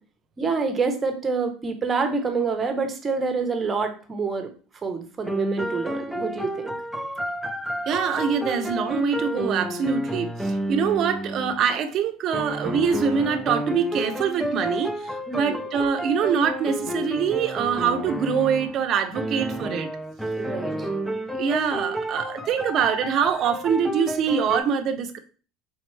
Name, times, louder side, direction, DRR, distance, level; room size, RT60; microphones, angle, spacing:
voice 1, 0.4-4.5 4.8-6.7 15.3-15.6 20.4-20.9, right 4 dB, 20° right, 5 dB, 0.8 m, -27 dB
sound 1, 5.2-11.6 12.3-18.8 19.1-24.6, right 1 dB, ahead, 0.4 m, -30 dB
voice 2, 7.9-19.9 21.3-25.2, right 7 dB, 45° right, 8 dB, 0.6 m, -24 dB
4.3 x 3.5 x 3.2 m, 0.37 s
supercardioid pair, 125°, 0 cm